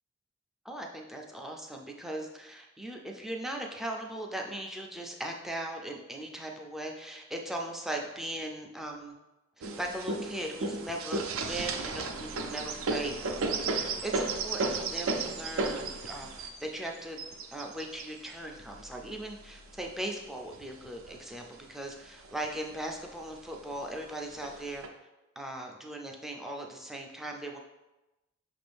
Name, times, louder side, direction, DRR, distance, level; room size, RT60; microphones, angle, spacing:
voice 1, 0.6-9.2 9.6-17.2 17.5-24.9 25.4-27.6, right 1 dB, ahead, 1 dB, 0.4 m, -39 dB
sound 1, 9.6-19.9 20.5-21.5 21.9-22.0 22.2-22.9 23.7-23.8 24.4-24.9, right 3 dB, 75° right, 0.4 m, -34 dB
6.0 x 2.6 x 3.4 m, 1.0 s
head